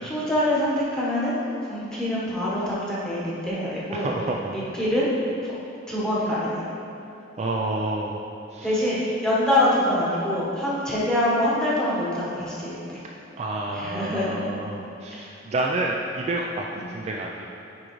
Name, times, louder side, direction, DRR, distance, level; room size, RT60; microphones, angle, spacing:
voice 1, 0.0-4.1 4.5-5.1 5.4-5.5 5.9-6.6 8.6-13.0 13.7-14.5 15.1-15.3 16.7-16.9, left 1 dB, 5° left, -8 dB, 1.1 m, -25 dB
voice 2, 3.9-4.6 7.4-8.2 8.5-8.7 13.4-17.5, right 2 dB, 35° right, -1 dB, 0.3 m, -29 dB
9.8 x 3.7 x 3.1 m, 2.8 s
head